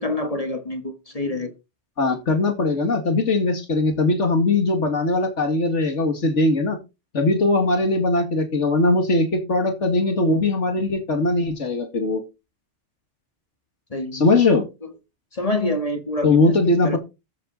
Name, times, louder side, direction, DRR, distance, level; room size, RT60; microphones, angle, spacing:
voice 1, 0.0-1.5 13.9-14.2 14.8-14.9 15.3-17.0, left 2 dB, 30° left, 1.9 m, -27 dB
voice 2, 2.0-6.8 7.1-12.2 14.1-14.7 16.2-17.0, left 2 dB, 85° left, 2.5 m, -20 dB
14.5 x 7.9 x 4.0 m
omnidirectional pair, 1.2 m